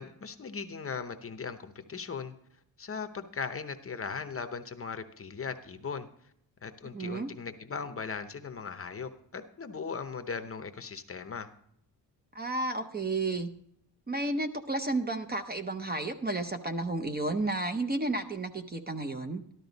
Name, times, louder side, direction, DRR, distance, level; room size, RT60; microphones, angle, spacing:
voice 1, 0.0-2.3 2.8-6.1 6.6-11.5, left 5 dB, 30° left, 8 dB, 0.7 m, -38 dB
voice 2, 6.9-7.3 12.3-13.5 14.1-19.4, right 2 dB, 25° right, 7 dB, 0.7 m, -32 dB
13.5 x 12.0 x 4.0 m, 0.71 s
wide cardioid pair, 175°, 42 cm